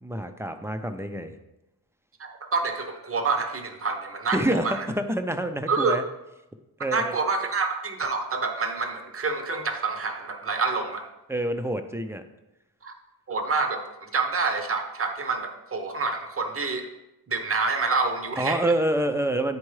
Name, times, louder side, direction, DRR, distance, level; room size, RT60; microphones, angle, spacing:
voice 1, 0.0-1.3 4.3-6.0 6.8-7.1 11.3-12.2 18.4-19.6, right 1 dB, 5° right, 7 dB, 0.4 m, -27 dB
voice 2, 2.2-4.9 5.7-6.0 6.9-11.1 12.8-12.9 13.3-16.9 17.3-18.7, right 4 dB, 35° right, 6 dB, 0.7 m, -27 dB
9.6 x 4.5 x 3.2 m, 0.94 s
wide cardioid pair, 135°, 39 cm